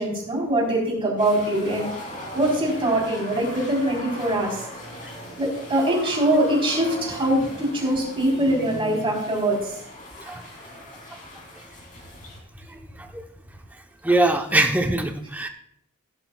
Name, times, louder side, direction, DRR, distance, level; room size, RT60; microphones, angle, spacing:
voice 1, 0.0-1.9 2.3-4.7 5.4-9.7, right 1 dB, 25° right, -2 dB, 3.8 m, -23 dB
sound 1, 1.2-12.4, left 1 dB, 35° left, 2.9 m, -39 dB
voice 2, 14.0-15.5, right 2 dB, 5° right, 4 dB, 0.8 m, -22 dB
16.5 x 11.0 x 2.3 m, 0.69 s
head